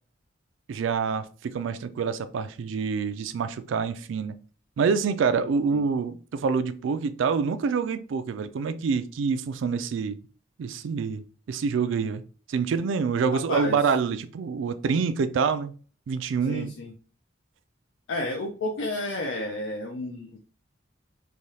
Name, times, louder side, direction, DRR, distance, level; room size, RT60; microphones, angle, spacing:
voice 1, 0.7-4.4 4.8-10.2 10.6-12.2 12.5-15.7 16.1-16.7, right 5 dB, 75° right, 0.3 m, -26 dB
voice 2, 16.5-16.9 18.1-20.4, left 1 dB, 75° left, 0.5 m, -31 dB
3.2 x 2.2 x 2.7 m
head